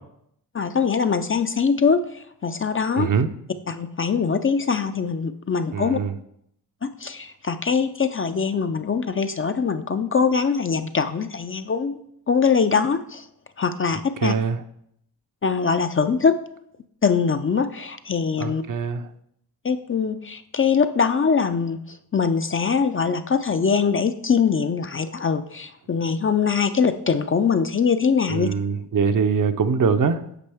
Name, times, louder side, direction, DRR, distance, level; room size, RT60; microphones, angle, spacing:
voice 1, 0.5-2.0 2.4-3.1 3.7-6.0 6.8-12.0 12.3-13.2 13.6-14.3 15.4-16.4 17.0-18.6 19.6-21.8 22.1-28.5, left 5 dB, 30° left, 9 dB, 0.4 m, -22 dB
voice 2, 3.0-3.3 5.7-6.1 14.2-14.6 18.4-19.0 28.3-30.2, right 6 dB, 50° right, 10 dB, 0.6 m, -22 dB
8.5 x 5.3 x 3.5 m, 0.73 s
cardioid pair, 70°, 41 cm